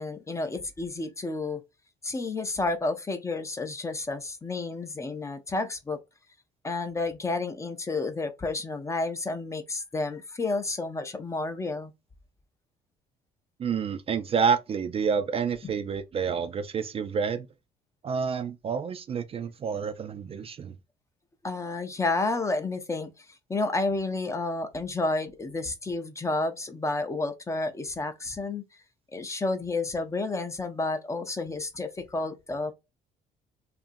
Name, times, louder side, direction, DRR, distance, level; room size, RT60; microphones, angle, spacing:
voice 1, 0.0-1.6 2.0-6.0 6.6-11.9 15.6-15.7 21.4-28.6 29.1-32.7, left 3 dB, 15° left, 0.5 m, -31 dB
voice 2, 13.6-17.5 18.0-20.7, right 6 dB, 35° right, 0.4 m, -28 dB
2.8 x 2.5 x 2.5 m
cardioid pair, 110°, 17 cm